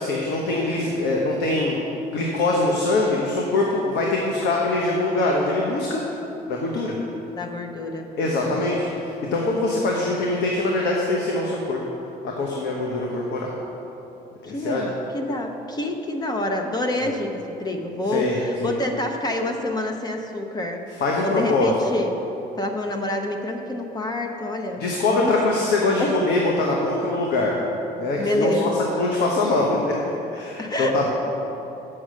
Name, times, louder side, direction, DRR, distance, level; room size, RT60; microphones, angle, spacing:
voice 1, 0.0-1.8 2.1-6.0 6.5-6.9 8.2-11.8 12.4-13.5 14.4-14.8 17.0-17.1 18.1-18.7 21.0-21.7 24.8-27.5 28.0-29.8 30.3-31.1, left 2 dB, 80° left, -1 dB, 1.1 m, -23 dB
voice 2, 7.3-8.1 8.4-8.6 8.9-9.0 14.4-22.2 22.6-25.4 26.0-26.2 28.2-28.9 30.6-31.1, left 1 dB, 25° left, 3 dB, 0.8 m, -27 dB
7.8 x 6.2 x 6.4 m, 2.9 s
cardioid pair, 110°, 17 cm